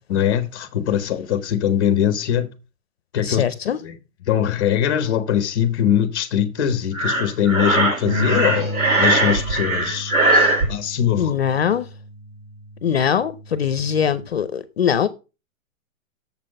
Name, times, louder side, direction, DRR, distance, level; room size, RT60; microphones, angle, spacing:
voice 1, 0.1-2.5 3.1-11.4, left 9 dB, 15° left, 0.8 m, -22 dB
voice 2, 3.2-3.8 11.2-11.9 12.8-15.1, left 8 dB, 50° left, 0.6 m, -21 dB
Breathing, 6.9-10.7, right 2 dB, 85° right, 3.7 m, -19 dB
Bass guitar, 8.0-14.3, equal, 25° right, 0.8 m, -32 dB
7.2 x 5.8 x 5.3 m
hypercardioid pair, 180°, 41 cm